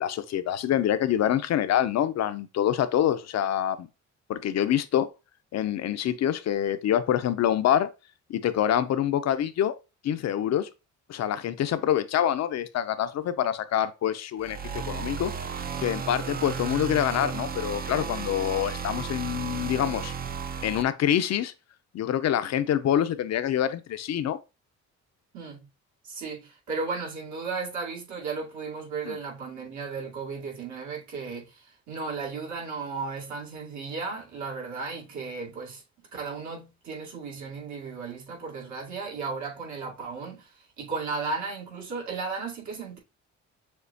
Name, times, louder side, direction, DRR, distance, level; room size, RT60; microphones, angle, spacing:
voice 1, 0.0-3.9 4.3-5.1 5.5-7.9 8.3-9.7 10.0-10.7 11.1-14.6 14.9-20.1 20.6-21.5 21.9-24.4 29.1-29.2, left 10 dB, 60° left, 0.6 m, -26 dB
sound 1, 14.4-20.8, right 6 dB, 30° right, 0.5 m, -34 dB
voice 2, 25.3-25.7 26.0-35.8 36.1-43.0, right 4 dB, 70° right, 2.2 m, -35 dB
6.4 x 2.3 x 2.7 m
cardioid pair, 90°, 30 cm